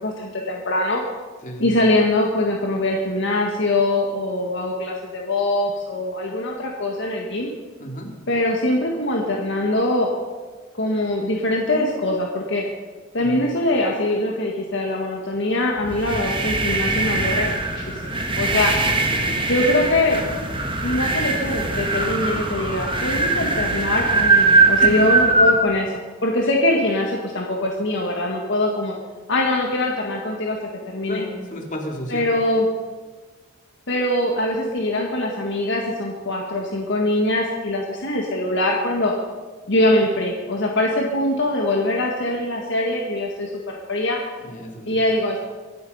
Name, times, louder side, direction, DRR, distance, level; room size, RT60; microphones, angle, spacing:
voice 1, 0.0-1.0 1.6-7.5 8.3-10.1 10.8-12.6 13.1-18.7 19.5-20.2 20.8-28.9 29.3-30.6 30.9-31.2 32.1-32.7 33.9-39.1 39.7-44.2 44.9-45.4, left 1 dB, 65° left, 0 dB, 1.7 m, -22 dB
voice 2, 1.4-1.8 7.8-8.1 13.2-13.4 19.1-19.4 24.8-25.1 31.1-32.3 44.4-45.0, equal, 40° left, 1 dB, 2.7 m, -32 dB
sound 1, 15.8-25.6, right 3 dB, 25° right, 1.6 m, -21 dB
24.0 x 8.2 x 5.5 m, 1.4 s
head